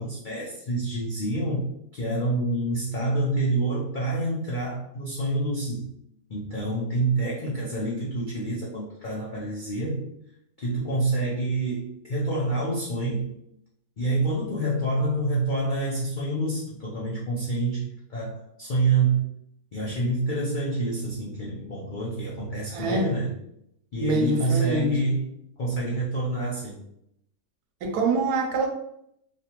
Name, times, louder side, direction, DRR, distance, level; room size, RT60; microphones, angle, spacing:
voice 1, 0.0-5.9 6.3-10.1 10.6-13.3 14.0-19.3 19.7-23.3 23.9-25.3 25.6-26.8, right 2 dB, 85° left, -5 dB, 0.4 m, -27 dB
voice 2, 22.7-23.1 24.0-25.2 27.8-28.7, right 2 dB, 85° right, 4 dB, 1.2 m, -25 dB
3.2 x 2.2 x 2.8 m, 0.75 s
omnidirectional pair, 1.6 m